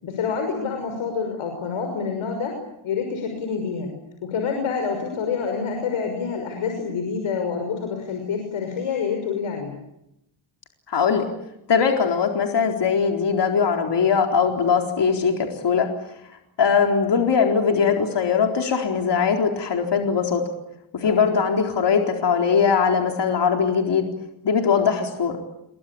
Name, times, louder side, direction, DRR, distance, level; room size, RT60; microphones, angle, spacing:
voice 1, 0.0-2.6 2.8-3.9 4.2-9.7 21.0-21.3, left 5 dB, 85° left, 4 dB, 6.2 m, -27 dB
voice 2, 10.9-11.3 11.7-15.9 16.6-20.4 20.9-24.0 24.4-25.4, left 6 dB, 60° left, 2 dB, 4.2 m, -20 dB
29.0 x 23.5 x 8.7 m, 0.84 s
cardioid pair, 90°, 48 cm